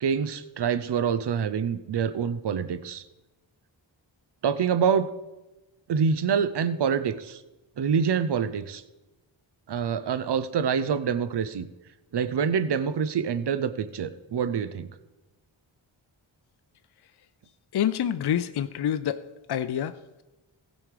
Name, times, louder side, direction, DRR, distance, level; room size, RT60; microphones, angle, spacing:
voice 1, 0.0-3.0 4.4-5.1 5.9-7.4 7.8-8.8 9.7-11.7 12.1-14.9, right 7 dB, 55° right, 14 dB, 0.7 m, -26 dB
voice 2, 17.7-19.2 19.5-20.2, left 9 dB, 55° left, 11 dB, 0.6 m, -27 dB
15.5 x 5.2 x 4.9 m, 1.0 s
cardioid pair, 45°, 48 cm